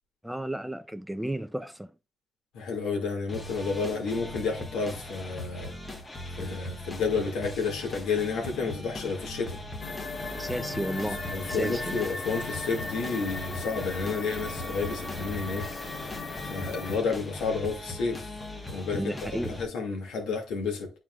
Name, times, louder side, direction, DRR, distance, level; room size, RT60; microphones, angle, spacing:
voice 1, 0.2-1.9 10.3-11.2 11.5-12.0 18.9-19.6, right 1 dB, 5° right, 0.5 m, -33 dB
voice 2, 2.5-5.7 6.3-9.6 11.0-15.6 16.5-18.3 18.7-20.9, left 4 dB, 85° left, 2.2 m, -31 dB
sound 1, 3.3-19.6, left 1 dB, 20° left, 1.3 m, -40 dB
sound 2, 9.8-17.0, left 3 dB, 35° left, 1.7 m, -37 dB
9.3 x 4.5 x 2.4 m
cardioid pair, 90°, 0 cm